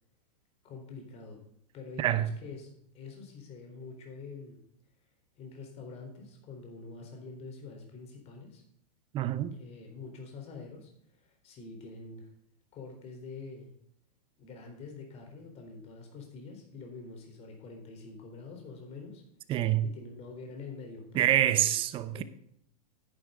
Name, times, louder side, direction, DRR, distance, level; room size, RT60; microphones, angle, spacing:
voice 1, 0.6-1.5 1.7-4.6 5.4-8.6 9.5-10.9 11.2-12.3 12.7-13.7 14.4-19.2 19.8-21.7 22.1-22.2, left 4 dB, 30° left, 3.9 m, -46 dB
voice 2, 2.0-2.3 9.1-9.6 19.5-19.8 21.1-22.2, right 12 dB, 25° right, 0.8 m, -26 dB
10.5 x 10.0 x 3.8 m
hypercardioid pair, 135°, 20 cm